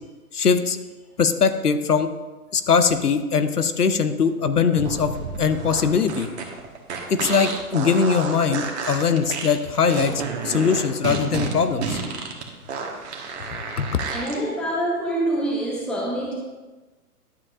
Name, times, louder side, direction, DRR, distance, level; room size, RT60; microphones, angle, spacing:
voice 1, 0.3-0.8 1.2-2.1 2.5-5.1 5.4-6.3 7.1-12.0 13.8-13.9, left 6 dB, 80° left, 10 dB, 0.8 m, -21 dB
sound 1, 4.7-14.4, right 4 dB, 45° right, 1.4 m, -30 dB
voice 2, 14.1-16.3, right 1 dB, ahead, -4 dB, 0.7 m, -25 dB
11.5 x 7.4 x 2.5 m, 1.2 s
figure-of-eight pair, 120°, 46 cm